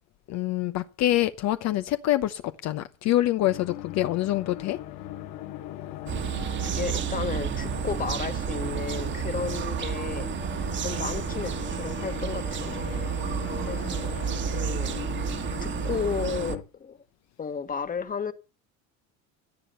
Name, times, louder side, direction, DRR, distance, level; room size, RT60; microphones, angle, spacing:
voice 1, 0.3-4.8, left 14 dB, 55° left, 0.9 m, -26 dB
sound 1, 3.4-16.6, left 13 dB, 75° left, 2.3 m, -40 dB
sound 2, 6.1-16.6, right 7 dB, 35° right, 1.6 m, -31 dB
voice 2, 6.6-10.3 10.8-12.8 13.6-14.2 14.5-15.0 15.6-17.0 17.4-18.3, left 6 dB, 25° left, 1.6 m, -33 dB
17.5 x 11.5 x 5.6 m
cardioid pair, 135°, 33 cm